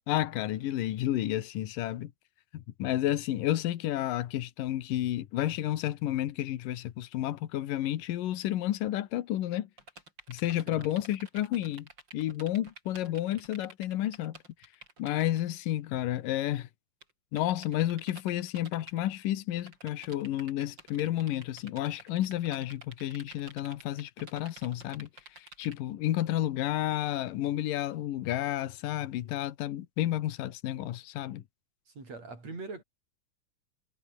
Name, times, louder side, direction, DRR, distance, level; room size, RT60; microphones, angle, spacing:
voice 1, 0.1-2.1 2.5-9.7 10.3-14.4 15.0-16.7 17.3-31.4, left 13 dB, 80° left, 3.0 m, -31 dB
sound 1, 9.8-15.5 16.6-16.7 17.0-17.1 17.4-19.0 19.6-25.7, right 2 dB, 30° right, 8.7 m, -50 dB
voice 2, 31.9-32.8, right 3 dB, 50° right, 8.9 m, -42 dB
omnidirectional pair, 3.8 m